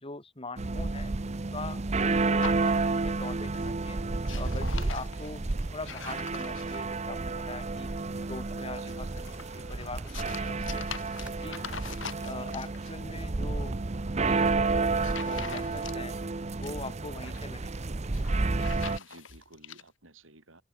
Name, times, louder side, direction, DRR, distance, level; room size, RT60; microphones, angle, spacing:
voice 1, 0.0-1.1 1.5-4.0 4.3-5.4 5.7-7.9 8.3-10.9 11.2-11.6 12.2-13.8 14.1-14.9 15.2-16.1 16.5-17.8, left 3 dB, 30° left, 3.3 m, -42 dB
sound 1, 0.6-19.0, right 3 dB, 35° right, 0.7 m, -31 dB
sound 2, 2.4-3.3 3.6-3.9 4.1-7.0 8.9-12.9 14.3-14.5 15.0-16.2 16.5-17.4 18.0-19.8, left 6 dB, 65° left, 5.2 m, -43 dB
sound 3, 6.7-11.3, equal, 5° right, 7.0 m, -55 dB
voice 2, 19.0-20.6, right 2 dB, 75° right, 8.0 m, -54 dB
head